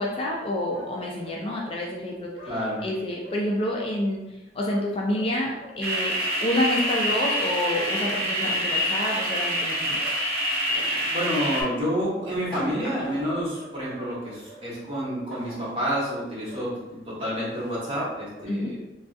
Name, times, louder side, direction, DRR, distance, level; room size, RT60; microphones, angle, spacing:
voice 1, 0.0-2.3 2.8-4.2 4.5-6.1 6.4-10.0 18.5-18.7, left 1 dB, 30° left, -2 dB, 0.3 m, -28 dB
sound 1, 0.7-0.9 1.2-1.4 2.3-2.9 3.2-3.4 3.7-3.9 4.6-5.7 6.8-7.0 7.2-7.4 7.7-7.9 9.0-9.2 10.0-10.2 10.7-10.9 11.4-11.5 11.8-12.0 12.4-12.6 13.5-14.1 14.4-15.1 16.0-16.2 16.5-16.6 17.2-17.4 18.3-18.4, equal, 50° left, 0.9 m, -46 dB
voice 2, 2.5-2.8 11.1-18.8, equal, 30° right, -8 dB, 1.3 m, -29 dB
sound 2, 5.8-11.6, equal, 60° right, 0.7 m, -26 dB
Drawer open or close, 6.4-7.3 8.0-8.8 10.7-11.2 12.0-13.4 15.3-15.8 16.4-16.5 17.2-17.8, equal, 5° left, 1.0 m, -43 dB
3.4 x 2.3 x 2.5 m, 1.0 s
head